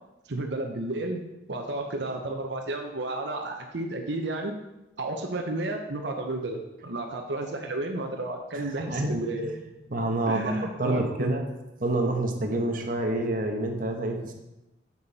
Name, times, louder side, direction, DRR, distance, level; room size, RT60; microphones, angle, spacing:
voice 1, 0.3-1.2 1.5-4.5 5.0-9.5 10.3-11.4, right 2 dB, 75° right, 2 dB, 0.9 m, -32 dB
voice 2, 8.5-9.2 9.9-11.5 11.8-14.3, right 2 dB, 50° right, 3 dB, 1.1 m, -28 dB
8.8 x 7.2 x 4.2 m, 0.95 s
head